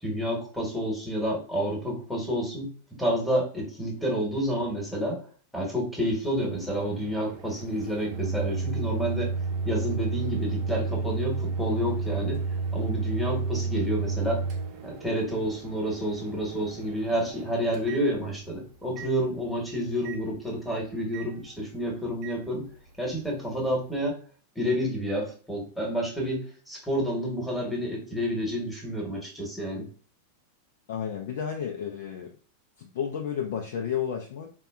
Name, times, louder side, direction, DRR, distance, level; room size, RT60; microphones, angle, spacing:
voice 1, 0.0-2.7 3.0-5.2 5.5-9.3 9.6-12.4 12.7-14.4 14.8-22.7 23.0-24.1 24.5-29.9, equal, ahead, -1 dB, 1.1 m, -29 dB
Microwave oven, 6.0-18.5 19.0-19.1 20.0-20.2 21.1-21.3 22.2-22.4, right 4 dB, 45° right, 0.6 m, -32 dB
voice 2, 30.9-32.3 32.8-34.5, left 8 dB, 55° left, 2 dB, 0.4 m, -32 dB
4.2 x 2.2 x 2.3 m, 0.42 s
figure-of-eight pair, 90°, 0 cm